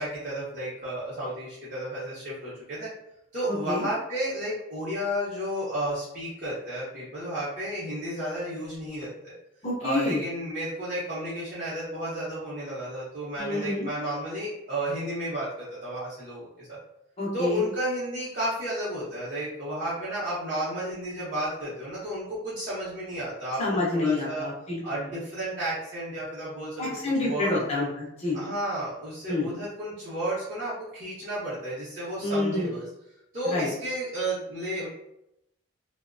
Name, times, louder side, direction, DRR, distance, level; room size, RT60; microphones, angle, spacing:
voice 1, 0.0-2.9 3.3-9.3 9.8-16.8 17.3-24.5 24.8-26.8 27.2-27.9 28.3-32.9 33.3-34.9, right 1 dB, 40° right, -10 dB, 0.7 m, -32 dB
voice 2, 3.5-3.9 9.6-10.2 13.4-13.9 17.2-17.6 23.6-24.8 26.8-28.4 29.3-29.5 32.2-32.7 33.5-33.7, left 2 dB, 30° left, -4 dB, 0.6 m, -28 dB
2.7 x 2.1 x 2.5 m, 0.81 s
head